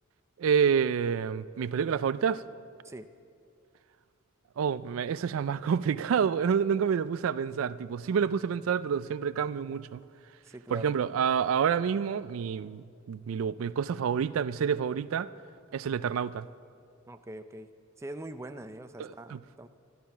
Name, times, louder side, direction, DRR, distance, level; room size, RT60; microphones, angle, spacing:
voice 1, 0.4-2.4 4.6-10.0 10.7-15.3 15.7-16.5 19.0-19.4, right 7 dB, 90° right, 0.3 m, -28 dB
voice 2, 10.5-10.9 17.1-17.7 18.0-19.7, right 1 dB, 15° right, 0.4 m, -43 dB
12.5 x 12.5 x 5.8 m
head